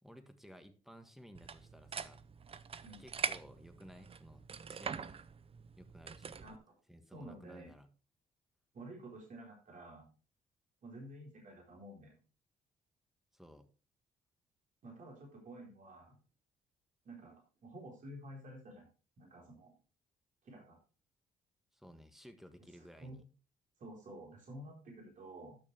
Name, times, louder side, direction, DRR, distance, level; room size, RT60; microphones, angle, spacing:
voice 1, 0.0-2.2 3.0-5.2 5.8-6.4 6.9-7.9 13.3-13.7 21.7-23.2, equal, ahead, 8 dB, 1.6 m, -56 dB
sound 1, 1.3-6.6, right 6 dB, 40° right, 0.6 m, -43 dB
voice 2, 6.4-6.7 7.1-7.7 8.7-10.1 10.8-12.1 14.8-16.2 17.0-18.9 19.2-19.7 20.4-20.8 22.8-23.2 23.8-25.6, right 1 dB, 55° right, -2 dB, 4.5 m, -51 dB
12.0 x 6.4 x 3.5 m, 0.36 s
supercardioid pair, 70°, 16 cm